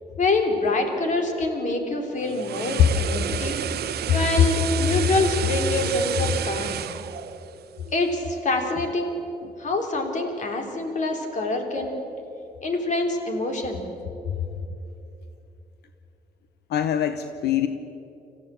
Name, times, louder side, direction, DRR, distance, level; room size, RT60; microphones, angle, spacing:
voice 1, 0.2-3.6 4.1-6.8 7.9-9.2 9.6-12.0 12.6-13.9, left 2 dB, 45° left, 4 dB, 3.3 m, -25 dB
sound 1, 2.1-8.3 8.6-8.8, right 10 dB, 75° right, 0.9 m, -31 dB
voice 2, 16.7-17.7, left 10 dB, 85° left, 9 dB, 0.9 m, -22 dB
26.0 x 15.0 x 8.6 m, 2.9 s
cardioid pair, 135°, 17 cm